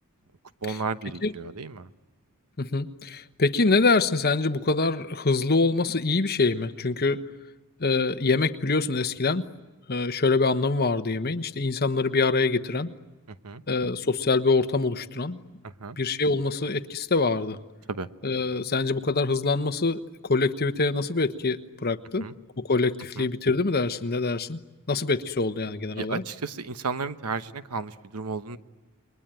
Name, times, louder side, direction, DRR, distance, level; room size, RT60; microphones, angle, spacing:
voice 1, 0.6-1.9 13.3-13.6 15.8-16.0 17.9-18.1 22.2-22.3 23.2-23.3 25.9-28.6, right 4 dB, 85° right, 12 dB, 1.1 m, -33 dB
voice 2, 2.6-7.2 7.8-9.4 9.9-12.9 13.7-15.4 16.0-17.6 18.2-22.3 22.6-24.6 24.9-26.2, left 3 dB, 45° left, 10 dB, 1.1 m, -25 dB
29.0 x 22.0 x 9.1 m, 1.1 s
head